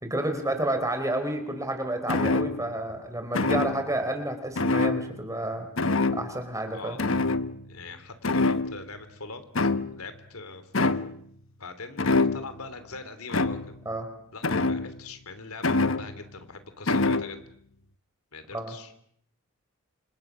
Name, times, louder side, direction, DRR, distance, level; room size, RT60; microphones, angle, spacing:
voice 1, 0.0-5.7 6.1-7.0 13.9-14.1 18.5-18.8, right 1 dB, 15° right, 6 dB, 4.1 m, -30 dB
sound 1, 2.1-2.8 3.3-4.0 4.6-5.5 5.8-6.4 7.0-7.9 8.2-9.0 9.6-10.2 10.7-11.2 12.0-12.7 13.3-13.9 14.4-15.1 15.6-16.4 16.9-17.4, left 3 dB, 60° left, 1.1 m, -26 dB
voice 2, 7.7-11.0 11.6-13.7 14.3-17.4 18.3-18.9, left 3 dB, 85° left, 10 dB, 3.2 m, -42 dB
29.0 x 27.0 x 6.2 m, 0.66 s
head